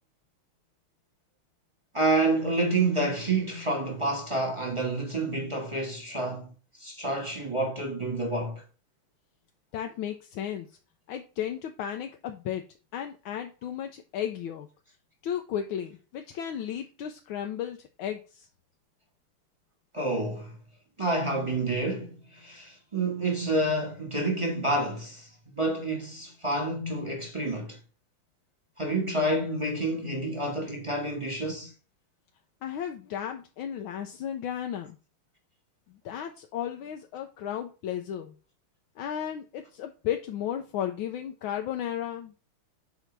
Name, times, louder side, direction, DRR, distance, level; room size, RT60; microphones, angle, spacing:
voice 1, 1.9-6.5 6.8-8.6 19.9-20.6 21.0-25.3 25.5-27.8 28.8-31.7, right 2 dB, 20° right, 1.0 m, -28 dB
voice 2, 9.7-10.7 11.1-12.7 12.9-14.7 15.2-18.5 32.6-35.0 36.0-38.3 39.0-42.3, left 10 dB, 75° left, 1.4 m, -34 dB
7.9 x 2.8 x 5.9 m
omnidirectional pair, 2.4 m